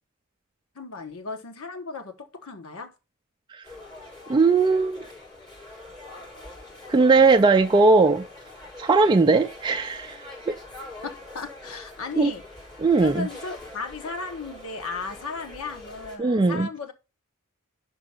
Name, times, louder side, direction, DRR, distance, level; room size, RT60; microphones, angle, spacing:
voice 1, 0.7-2.9 11.0-12.4 13.0-16.9, left 4 dB, 80° left, 1.3 m, -35 dB
sound 1, 3.6-16.2, left 2 dB, 20° left, 4.6 m, -44 dB
voice 2, 4.3-5.0 6.9-8.3 8.8-10.6 12.2-12.3 12.8-13.3 16.2-16.7, right 3 dB, 20° right, 0.4 m, -19 dB
6.0 x 5.8 x 5.6 m
head